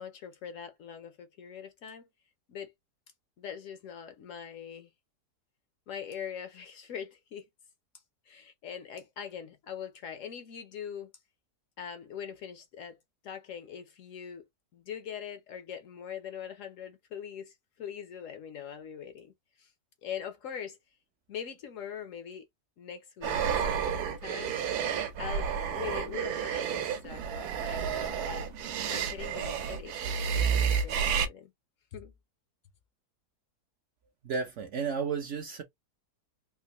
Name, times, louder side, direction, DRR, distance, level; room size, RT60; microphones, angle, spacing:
voice 1, 0.0-2.1 2.5-2.7 3.4-4.9 5.9-7.5 8.3-11.1 11.8-13.0 13.2-14.4 14.7-19.3 19.6-19.7 20.0-20.8 21.3-22.4 22.8-23.9 24.2-24.6 25.2-28.5 28.9-31.5 31.9-32.1, left 8 dB, 65° left, 0.8 m, -42 dB
sound 1, 23.2-31.3, right 7 dB, 80° right, 1.2 m, -30 dB
voice 2, 34.2-35.6, right 5 dB, 65° right, 0.7 m, -32 dB
3.7 x 2.5 x 2.8 m
omnidirectional pair, 1.7 m